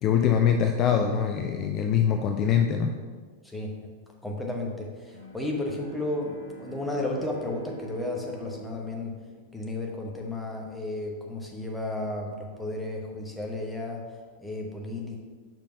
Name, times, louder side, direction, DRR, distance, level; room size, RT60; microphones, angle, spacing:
voice 1, 0.0-3.0, left 8 dB, 35° left, 5 dB, 0.4 m, -23 dB
voice 2, 3.4-3.9 4.2-9.1 9.5-15.2, left 2 dB, 5° left, -1 dB, 1.2 m, -33 dB
Bowed string instrument, 5.1-10.4, right 4 dB, 65° left, 1.6 m, -46 dB
5.2 x 4.5 x 5.4 m, 1.5 s
figure-of-eight pair, 90°, 0 cm